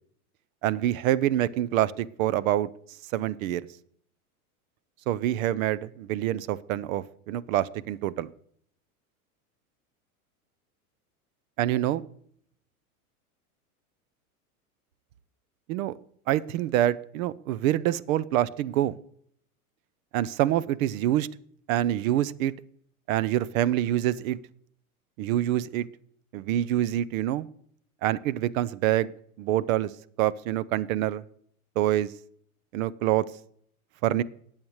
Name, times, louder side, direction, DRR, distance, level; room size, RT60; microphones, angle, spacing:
voice 1, 0.6-2.7 3.1-3.6 5.1-8.3 11.6-12.0 15.7-15.9 16.3-19.0 20.1-21.3 21.7-22.5 23.1-24.4 25.2-25.9 26.3-27.5 28.0-29.1 29.4-29.9 30.2-31.2 31.8-32.1 32.7-33.3 34.0-34.2, right 13 dB, 65° right, 20 dB, 0.7 m, -26 dB
19.0 x 7.4 x 3.1 m, 0.64 s
hypercardioid pair, 110°, 44 cm